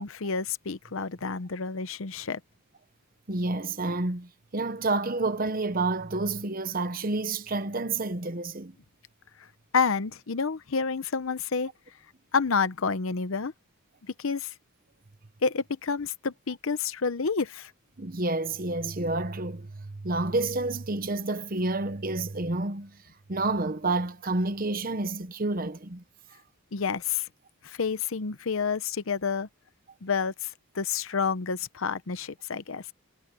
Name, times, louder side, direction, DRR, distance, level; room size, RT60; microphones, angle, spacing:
voice 1, 0.0-2.4 9.7-11.7 12.3-13.5 14.2-14.5 15.4-17.7 26.7-27.3 27.6-29.5 30.0-32.8, left 5 dB, 65° left, 0.7 m, -29 dB
voice 2, 3.3-8.7 18.0-23.0 23.3-26.0, right 2 dB, 40° right, 1.0 m, -29 dB
head